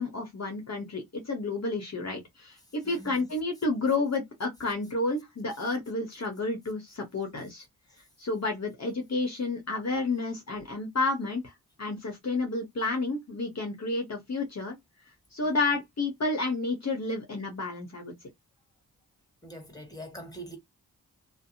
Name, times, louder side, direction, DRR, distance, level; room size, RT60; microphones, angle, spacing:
voice 1, 0.0-7.6 8.2-11.4 11.8-14.8 15.3-18.1, left 3 dB, 45° left, 1.0 m, -30 dB
voice 2, 2.8-3.3 15.4-15.7 19.4-20.6, right 1 dB, 10° left, 1.4 m, -44 dB
2.6 x 2.1 x 2.6 m
cardioid pair, 45°, 37 cm